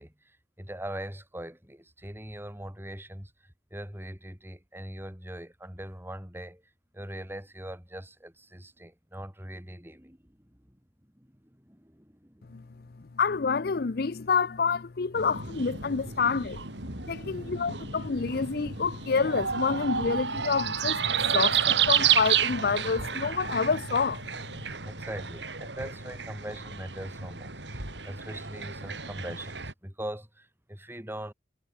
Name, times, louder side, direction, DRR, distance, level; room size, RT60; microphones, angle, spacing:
voice 1, 0.0-6.6 6.9-10.8 11.1-12.8 16.8-17.2 24.8-31.3, right 1 dB, 15° right, 6.4 m, -42 dB
voice 2, 13.2-16.6 17.1-21.0 21.3-24.2, left 5 dB, 60° left, 0.6 m, -27 dB
sound 1, 15.2-29.7, right 8 dB, 85° right, 6.5 m, -31 dB
head